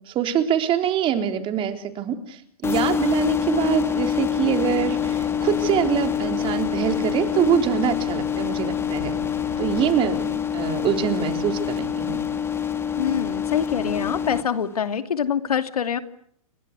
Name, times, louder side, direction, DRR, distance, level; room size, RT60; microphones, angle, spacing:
voice 1, 0.1-9.3 9.6-12.2, right 9 dB, 25° right, 6 dB, 3.8 m, -24 dB
sound 1, 2.6-14.4, left 8 dB, 15° left, 3.1 m, -26 dB
sound 2, 4.9-10.3, left 8 dB, 60° left, 5.1 m, -41 dB
voice 2, 13.0-16.0, left 7 dB, 80° left, 9 dB, 2.7 m, -25 dB
29.5 x 24.0 x 8.3 m, 0.67 s
hypercardioid pair, 125°, 19 cm